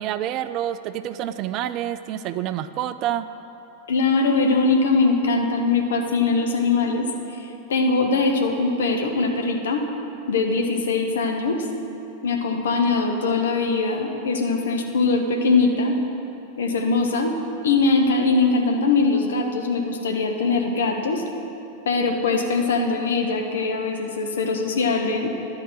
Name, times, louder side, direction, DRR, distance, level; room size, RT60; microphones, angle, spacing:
voice 1, 0.0-3.3, right 11 dB, 40° right, 12 dB, 0.4 m, -28 dB
voice 2, 3.9-9.8 10.3-11.7 12.2-15.9 16.6-17.3 17.6-21.2 21.9-25.3, left 3 dB, 60° left, 3 dB, 1.0 m, -22 dB
11.0 x 4.8 x 7.5 m, 2.8 s
figure-of-eight pair, 90°, 0 cm